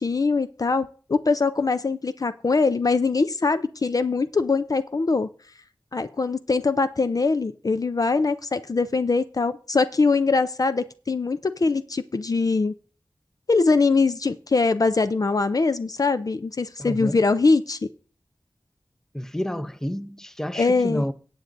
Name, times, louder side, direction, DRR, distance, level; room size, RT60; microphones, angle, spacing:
voice 1, 0.0-5.3 5.9-12.7 13.5-17.8 20.5-21.0, left 4 dB, 50° left, 0.4 m, -22 dB
voice 2, 16.8-17.2 19.1-21.1, equal, 5° left, 0.6 m, -29 dB
17.5 x 7.8 x 2.6 m
wide cardioid pair, 70°, 8 cm